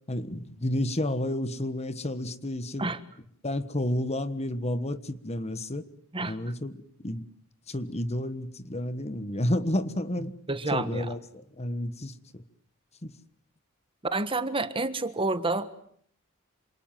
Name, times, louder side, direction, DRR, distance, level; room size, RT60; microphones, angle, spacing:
voice 1, 0.1-2.9 3.4-5.9 6.2-7.3 7.7-10.3 10.7-12.4 13.0-13.2, left 1 dB, 30° left, 1.4 m, -31 dB
voice 2, 10.5-11.1 14.1-15.7, right 2 dB, 25° right, 1.4 m, -29 dB
28.0 x 27.5 x 7.4 m
head